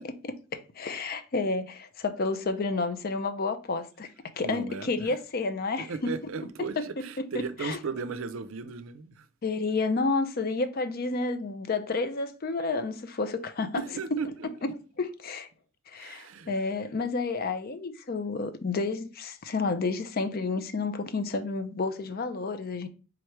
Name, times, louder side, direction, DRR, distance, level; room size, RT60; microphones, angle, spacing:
voice 1, 0.2-4.1 4.4-6.1 6.8-6.9 7.2-7.8 9.4-14.2 14.6-14.7 15.0-15.5 15.9-22.9, left 3 dB, 45° left, 0.5 m, -30 dB
voice 2, 4.4-5.1 5.9-9.3 13.8-14.5 15.9-16.5, right 5 dB, 65° right, 0.5 m, -36 dB
3.7 x 3.1 x 4.5 m
head